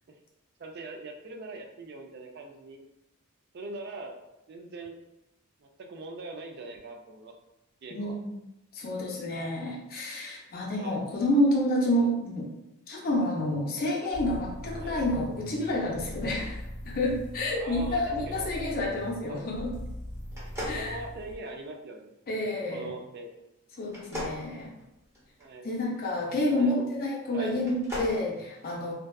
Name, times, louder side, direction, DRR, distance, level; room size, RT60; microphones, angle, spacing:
voice 1, 0.6-2.8 3.5-4.2 4.5-5.0 5.6-7.3 7.8-8.2 10.7-11.0 14.8-15.0 17.6-18.5 19.3-19.4 20.4-22.1 22.7-23.4 25.4-25.7 26.5-26.9 27.3-27.6, right 2 dB, 50° right, 3 dB, 0.3 m, -41 dB
voice 2, 7.9-8.4 8.7-12.5 12.9-19.7 20.7-21.0 22.3-22.9 23.8-24.7 25.6-28.9, left 1 dB, 45° left, -3 dB, 0.5 m, -29 dB
sound 1, 14.1-21.4, equal, 75° right, 1.2 m, -40 dB
sound 2, 20.3-21.7 23.9-25.5 27.5-28.2, left 1 dB, 15° right, 0.7 m, -38 dB
2.5 x 2.2 x 2.2 m, 0.90 s
head